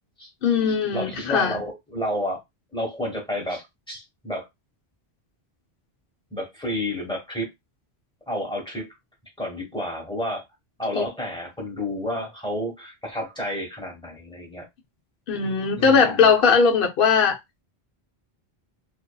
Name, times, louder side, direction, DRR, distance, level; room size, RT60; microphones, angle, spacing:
voice 1, 0.4-1.6 10.9-11.0 15.3-17.4, left 5 dB, 60° left, 0.9 m, -19 dB
voice 2, 0.9-2.4 2.7-4.5 6.3-7.5 8.3-8.9 9.4-10.4 10.8-14.6 15.8-16.3, left 1 dB, 5° left, 1.0 m, -30 dB
2.6 x 2.5 x 2.2 m
omnidirectional pair, 1.1 m